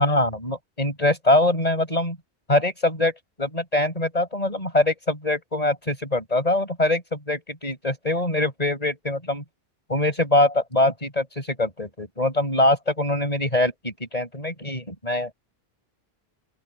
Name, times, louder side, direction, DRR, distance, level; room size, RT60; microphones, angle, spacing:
voice 1, 0.0-2.2 2.5-3.1 3.4-9.4 9.9-15.3, left 1 dB, 35° left, 6.3 m, -23 dB
open air
omnidirectional pair, 1.1 m